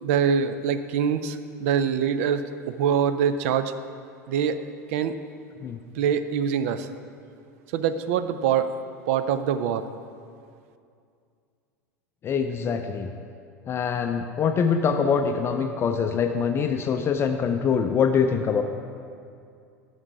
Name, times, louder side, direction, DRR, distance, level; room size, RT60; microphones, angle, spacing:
voice 1, 0.0-3.7 4.3-4.6 4.9-5.1 6.0-6.9 7.7-8.7 9.1-9.8, right 8 dB, 55° right, 12 dB, 0.5 m, -24 dB
voice 2, 12.2-13.1 13.7-18.6, left 6 dB, 30° left, 6 dB, 0.5 m, -24 dB
11.0 x 6.6 x 4.7 m, 2.4 s
figure-of-eight pair, 80°, 9 cm